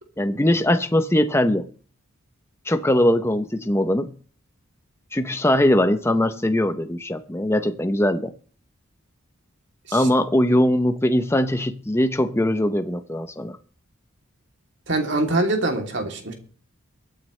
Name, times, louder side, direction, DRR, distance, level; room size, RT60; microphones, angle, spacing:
voice 1, 0.2-1.7 2.7-4.1 5.1-8.3 9.9-13.6, left 1 dB, 10° left, 8 dB, 0.7 m, -21 dB
voice 2, 14.9-16.3, right 2 dB, 55° right, 3 dB, 2.9 m, -24 dB
23.0 x 9.2 x 3.2 m, 0.42 s
head